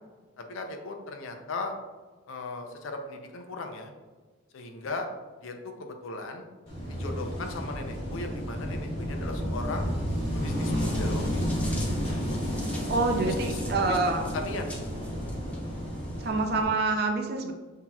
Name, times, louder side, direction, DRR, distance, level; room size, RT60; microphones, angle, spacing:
voice 1, 0.4-1.7 2.3-3.9 4.5-5.1 5.4-6.4 6.9-9.9 10.3-11.4 13.3-14.0 14.3-14.7, left 3 dB, 70° left, 4 dB, 0.5 m, -37 dB
Wind / Waves surf, 6.7-16.7, equal, 30° left, 1.1 m, -31 dB
sound 1, 10.8-16.3, left 1 dB, 5° left, 0.4 m, -46 dB
voice 2, 12.9-14.2 16.2-17.5, right 3 dB, 50° right, 4 dB, 0.4 m, -26 dB
5.8 x 2.8 x 2.3 m, 1.3 s
head